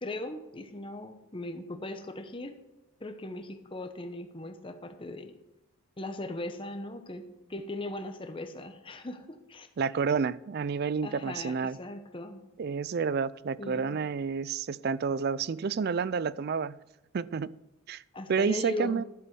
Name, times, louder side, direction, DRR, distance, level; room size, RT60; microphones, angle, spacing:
voice 1, 0.0-2.6 3.0-5.3 6.0-9.7 11.0-12.4 13.6-14.0 18.1-19.0, left 2 dB, 25° left, 7 dB, 1.0 m, -39 dB
voice 2, 9.8-11.8 12.6-16.8 17.1-17.6 17.9-18.0 18.3-19.0, right 5 dB, 50° right, 19 dB, 0.3 m, -30 dB
11.5 x 7.7 x 6.0 m, 0.97 s
head